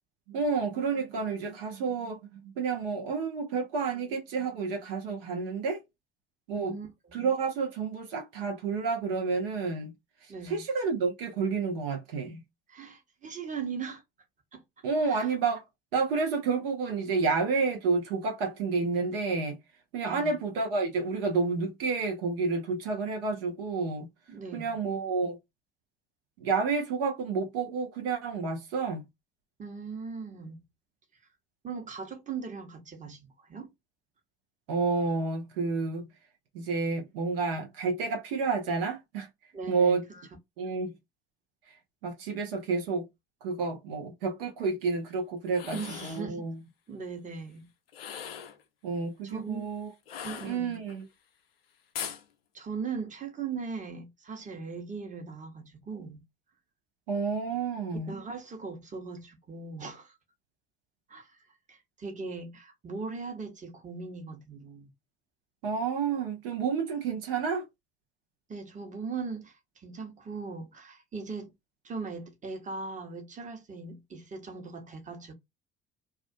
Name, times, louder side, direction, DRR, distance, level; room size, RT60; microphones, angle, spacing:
voice 1, 0.3-5.8 6.5-6.8 7.1-9.9 10.4-12.4 14.8-15.6 15.9-19.6 19.9-24.1 24.5-25.4 26.4-29.0 34.7-36.1 36.5-39.3 39.7-40.0 40.6-40.9 41.7-41.8 42.0-43.1 43.4-46.6 48.8-49.9 50.4-51.0 57.1-58.1 65.6-67.6, right 4 dB, 75° right, 0.8 m, -30 dB
voice 2, 6.5-7.2 10.3-10.6 12.7-14.0 14.5-14.6 15.0-15.3 20.0-20.4 24.3-24.8 29.6-30.6 31.6-33.7 39.5-40.3 45.7-46.4 46.9-47.7 49.2-49.7 50.2-50.8 52.5-56.2 58.1-60.2 61.1-64.9 68.5-71.5 71.8-75.3, right 5 dB, 25° right, 1.0 m, -39 dB
sound 1, 45.5-46.3 47.9-48.6 50.1-51.0 51.9-52.2, left 8 dB, 85° left, 0.5 m, -39 dB
2.4 x 2.3 x 2.5 m
hypercardioid pair, 60°, 29 cm